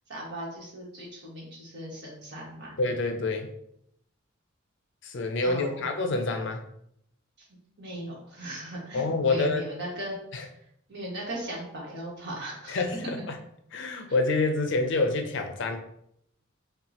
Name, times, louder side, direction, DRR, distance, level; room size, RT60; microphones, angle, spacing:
voice 1, 0.1-2.7 5.4-5.8 7.4-7.5 7.8-10.1 10.9-12.8, right 1 dB, 55° right, -5 dB, 1.6 m, -38 dB
voice 2, 2.8-3.5 5.0-6.6 8.9-9.6 10.3-10.4 12.7-13.3 13.7-15.8, left 3 dB, 60° left, 6 dB, 0.5 m, -27 dB
5.5 x 2.4 x 2.8 m, 0.73 s
head